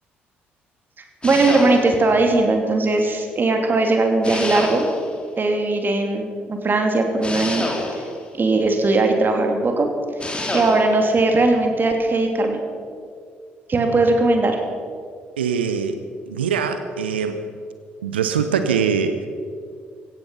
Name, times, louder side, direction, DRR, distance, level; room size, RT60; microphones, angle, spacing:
sound 1, 1.2-2.1 4.2-5.2 7.2-8.2 10.2-11.0, left 2 dB, 20° left, 3.5 m, -28 dB
voice 1, 1.2-4.9 5.4-7.7 7.9-8.0 8.4-9.9 10.5-12.6 13.7-14.6, right 2 dB, 35° right, 4 dB, 2.8 m, -19 dB
voice 2, 15.4-16.0 16.3-17.4 18.0-19.3, right 6 dB, 80° right, 9 dB, 0.7 m, -22 dB
17.0 x 14.0 x 5.6 m, 2.2 s
figure-of-eight pair, 45°, 6 cm